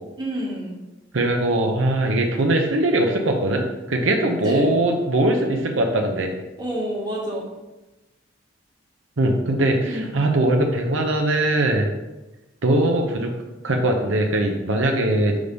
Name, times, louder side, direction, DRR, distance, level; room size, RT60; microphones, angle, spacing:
voice 1, 0.2-0.7 4.4-4.7 6.6-7.5 9.9-10.2, right 1 dB, 20° right, -4 dB, 1.5 m, -28 dB
voice 2, 1.1-6.3 9.2-11.9 12.6-13.3 13.6-15.4, right 1 dB, 85° right, 2 dB, 0.8 m, -21 dB
6.4 x 3.5 x 5.3 m, 1.1 s
head